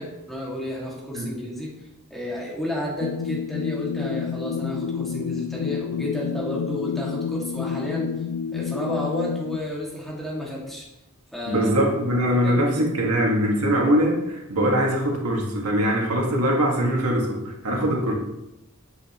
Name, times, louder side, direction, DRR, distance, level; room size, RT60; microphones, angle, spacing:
voice 1, 0.0-1.7 2.1-8.1 8.5-10.9 11.3-11.7 12.4-13.1, left 1 dB, ahead, -5 dB, 2.1 m, -31 dB
sound 1, 3.0-9.6, left 6 dB, 70° left, 0.3 m, -29 dB
voice 2, 11.5-18.1, equal, 85° right, -1 dB, 1.9 m, -22 dB
9.7 x 7.9 x 3.0 m, 0.91 s
head